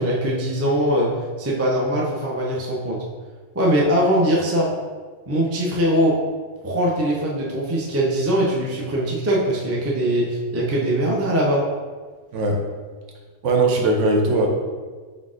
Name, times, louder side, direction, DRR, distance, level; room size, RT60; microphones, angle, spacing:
voice 1, 0.0-3.0 3.5-4.7 5.3-6.2 6.6-11.7, equal, 20° right, -4 dB, 0.4 m, -21 dB
voice 2, 12.3-12.6 13.4-14.5, right 2 dB, 80° right, 1 dB, 1.1 m, -19 dB
4.7 x 4.0 x 2.5 m, 1.4 s
omnidirectional pair, 1.2 m